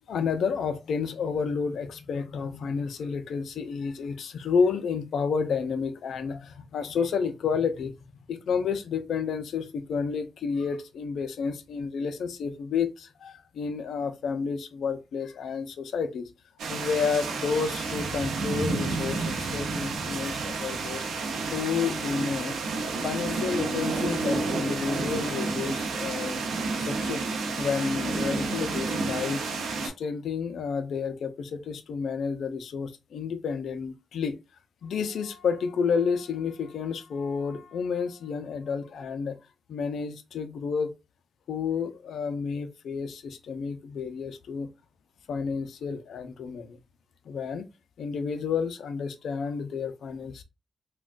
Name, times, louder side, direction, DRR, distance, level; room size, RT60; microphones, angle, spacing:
voice 1, 0.1-8.0 8.3-16.3 16.7-21.1 21.5-22.6 23.0-26.4 26.8-29.4 29.8-34.4 34.8-39.4 39.7-40.9 41.5-44.7 45.3-46.8 47.3-47.7 48.0-50.4, left 6 dB, 80° left, 0.4 m, -30 dB
sound 1, 16.6-29.9, right 3 dB, 90° right, 0.7 m, -30 dB
3.7 x 2.2 x 2.4 m
cardioid pair, 55°, 0 cm